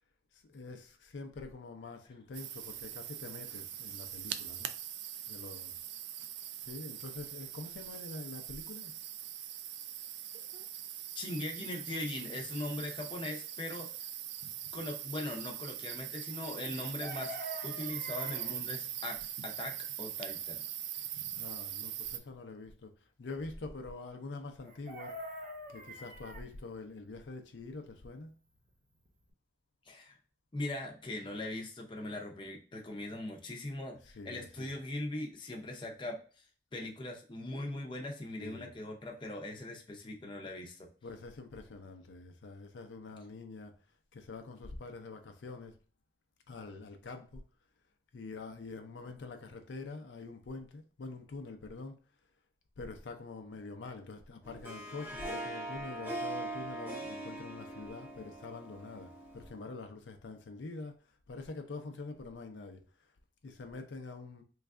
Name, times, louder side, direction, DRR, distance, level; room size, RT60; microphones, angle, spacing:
voice 1, 0.3-4.7 5.3-5.7 6.6-8.9 21.4-22.9 23.2-28.3 34.0-34.7 38.4-38.7 41.0-43.8 44.1-45.8 46.5-47.4 48.1-52.0 52.8-61.0 61.3-63.1 63.4-64.4, left 3 dB, 85° left, 0.5 m, -45 dB
sound 1, 2.3-22.2, right 11 dB, 75° right, 0.3 m, -42 dB
voice 2, 11.2-13.9 14.7-17.4 17.6-19.2 19.4-20.6 29.9-30.2 30.5-36.4 36.7-40.9, left 1 dB, 25° left, 0.6 m, -40 dB
Chicken rooster, 16.7-18.6 24.6-26.5 28.7-28.8 29.1-29.3, right 1 dB, 45° right, 0.8 m, -44 dB
Harp, 54.4-59.7, right 1 dB, 15° right, 1.1 m, -41 dB
3.2 x 2.3 x 3.5 m
head